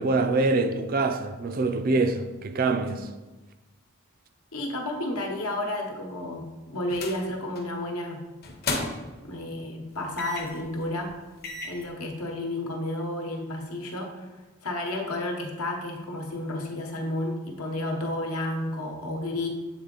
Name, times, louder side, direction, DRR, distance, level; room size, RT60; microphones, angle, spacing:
voice 1, 0.0-3.1, right 3 dB, 40° right, 0.4 m, -25 dB
voice 2, 4.5-8.2 9.2-11.1 11.6-14.3 14.6-19.5, left 1 dB, 80° left, 1.1 m, -31 dB
sound 1, 6.9-7.2 7.6-7.8 8.4-9.2 10.2-10.6 11.1-11.2 11.4-11.8, left 2 dB, 45° left, 0.8 m, -33 dB
7.8 x 3.7 x 3.9 m
head